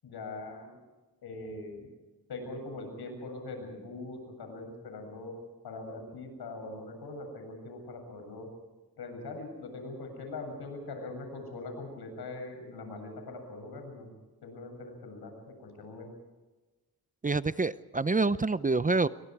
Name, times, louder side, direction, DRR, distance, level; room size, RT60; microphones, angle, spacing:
voice 1, 0.0-0.8 1.2-1.9 2.3-5.3 5.6-8.5 9.0-14.1 14.4-16.1, left 2 dB, 85° left, 4 dB, 7.7 m, -42 dB
voice 2, 17.2-19.1, right 3 dB, 20° right, 15 dB, 0.6 m, -27 dB
27.0 x 24.5 x 4.8 m, 1.2 s
cardioid pair, 75°, 38 cm